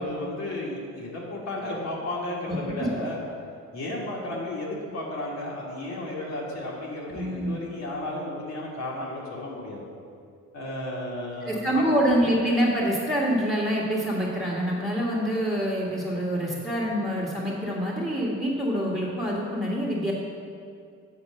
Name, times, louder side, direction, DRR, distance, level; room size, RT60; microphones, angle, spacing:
voice 1, 0.0-3.2 3.7-9.8 10.5-11.9, left 1 dB, 60° left, -4 dB, 2.0 m, -33 dB
voice 2, 7.1-7.6 11.4-20.1, equal, 10° right, -6 dB, 1.8 m, -26 dB
8.3 x 4.4 x 6.6 m, 2.3 s
cardioid pair, 90°, 30 cm